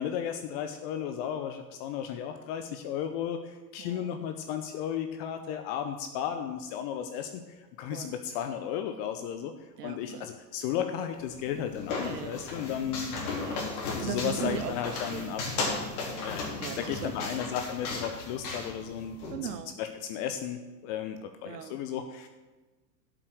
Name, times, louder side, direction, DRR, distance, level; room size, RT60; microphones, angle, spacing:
voice 1, 0.0-7.4 7.8-9.5 9.8-13.2 14.0-15.4 16.2-19.2 19.8-22.3, left 9 dB, 40° left, 7 dB, 0.9 m, -34 dB
voice 2, 3.8-4.2 7.9-8.2 9.8-10.3 11.9-12.4 13.3-15.4 16.1-16.3 16.6-17.4 17.8-17.9 19.3-19.8 21.5-21.8, right 10 dB, 70° right, 13 dB, 1.0 m, -39 dB
sound 1, 11.1-19.3, left 3 dB, 60° left, 4.3 m, -35 dB
12.0 x 7.9 x 6.4 m, 1.2 s
figure-of-eight pair, 100°, 50 cm